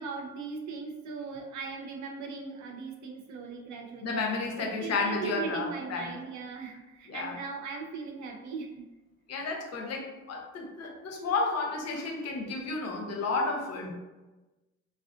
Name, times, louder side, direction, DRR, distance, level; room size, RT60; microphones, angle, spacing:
voice 1, 0.0-4.2 4.6-8.9, right 4 dB, 70° right, 1 dB, 0.6 m, -39 dB
voice 2, 4.0-6.2 7.1-7.3 9.3-13.9, left 3 dB, 55° left, 1 dB, 0.6 m, -32 dB
2.4 x 2.3 x 2.4 m, 1.1 s
cardioid pair, 90°, 30 cm